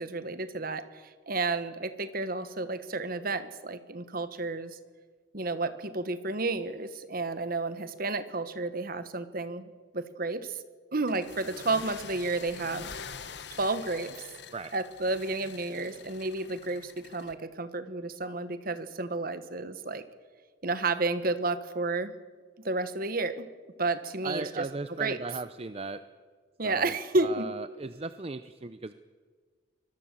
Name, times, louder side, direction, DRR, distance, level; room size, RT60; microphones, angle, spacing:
voice 1, 0.0-4.8 5.3-10.6 10.9-12.9 13.6-14.3 14.7-20.0 20.6-22.1 22.6-23.5 23.8-24.7 25.0-25.2 26.6-27.5, right 3 dB, 45° right, 12 dB, 1.3 m, -31 dB
sound 1, 11.0-17.3, left 6 dB, 55° left, 1.2 m, -45 dB
voice 2, 24.2-26.0 26.6-26.9 27.2-28.9, right 3 dB, 30° right, 12 dB, 0.6 m, -37 dB
24.5 x 19.5 x 7.6 m, 1.5 s
head